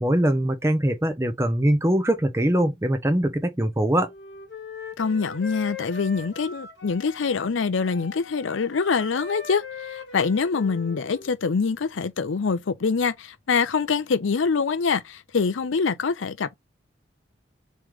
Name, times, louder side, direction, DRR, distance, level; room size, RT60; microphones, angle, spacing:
voice 1, 0.0-4.1, right 1 dB, 15° right, 0.7 m, -22 dB
Wind instrument woodwind instrument, 4.0-7.5 7.8-11.3, left 5 dB, 65° left, 1.2 m, -40 dB
voice 2, 5.0-9.6 9.9-16.5, left 5 dB, 85° left, 0.6 m, -25 dB
3.2 x 3.1 x 3.6 m
head